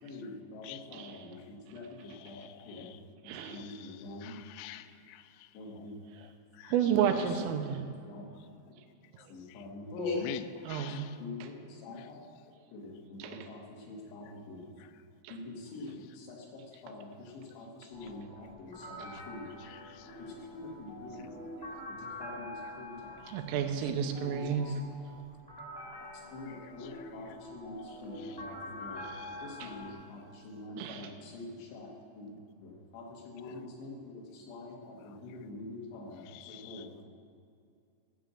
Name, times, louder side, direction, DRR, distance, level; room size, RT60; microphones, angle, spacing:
voice 1, 0.0-2.4 2.7-2.9 3.2-4.4 5.5-6.0 6.8-7.2 8.1-8.2 9.3-10.2 11.2-12.2 12.7-14.7 15.3-19.5 20.2-21.3 21.9-23.2 23.5-23.7 24.2-24.7 26.3-29.1 29.4-32.3 32.6-37.1, left 2 dB, 65° left, 3.5 m, -44 dB
voice 2, 0.9-1.3 3.2-3.6 6.2-6.3 6.6-7.9 10.6-11.0 11.4-11.5 13.2-13.5 15.2-15.4 19.0-19.1 23.3-24.7 29.6-29.7 30.8-31.1, right 8 dB, 90° right, 3.3 m, -32 dB
voice 3, 2.3-2.9 3.6-3.7 4.2-4.8 6.6-6.7 10.2-10.4 10.7-11.0 36.3-36.8, left 14 dB, 85° left, 3.2 m, -44 dB
sound 1, 17.9-29.9, left 1 dB, 15° left, 0.9 m, -46 dB
14.0 x 5.8 x 7.6 m
omnidirectional pair, 5.9 m